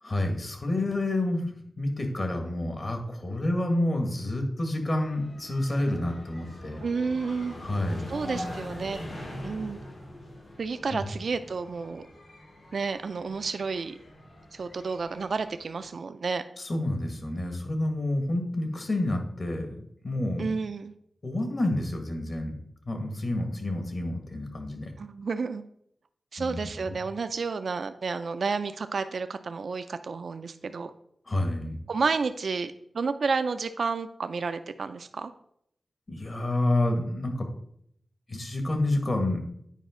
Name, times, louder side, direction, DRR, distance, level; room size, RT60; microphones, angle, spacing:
voice 1, 0.0-6.8 7.6-8.0 10.9-11.0 16.6-20.5 21.2-22.5 22.8-24.9 26.4-26.6 31.3-31.8 36.1-37.5 38.3-39.4, left 1 dB, 50° left, 4 dB, 1.6 m, -29 dB
sound 1, 4.8-15.9, left 1 dB, 80° left, 2.7 m, -43 dB
voice 2, 6.8-7.6 8.1-9.0 9.4-9.8 10.6-12.1 12.7-14.0 14.5-16.4 20.4-20.9 25.0-25.6 26.3-30.9 31.9-35.3, right 4 dB, 75° right, 10 dB, 0.4 m, -31 dB
9.1 x 5.0 x 3.7 m, 0.70 s
wide cardioid pair, 70°, 0 cm